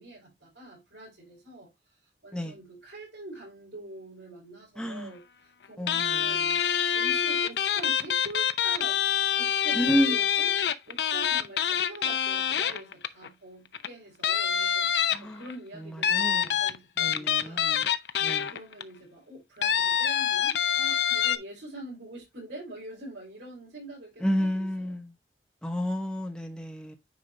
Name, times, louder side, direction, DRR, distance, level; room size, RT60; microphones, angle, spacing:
voice 1, 0.0-1.7 2.2-6.5 6.9-9.0 9.3-18.0 18.5-25.1, right 1 dB, 90° right, 5.0 m, -45 dB
voice 2, 4.8-5.1 5.8-6.4 9.8-10.1 15.1-15.4 16.1-16.4 17.0-17.9 18.2-18.5 24.2-25.0 25.6-27.0, equal, 5° left, 1.1 m, -30 dB
sound 1, 5.9-13.3 13.7-13.9 14.2-15.5 16.0-18.8 19.6-21.4, left 9 dB, 75° left, 0.6 m, -26 dB
9.3 x 4.9 x 2.7 m
head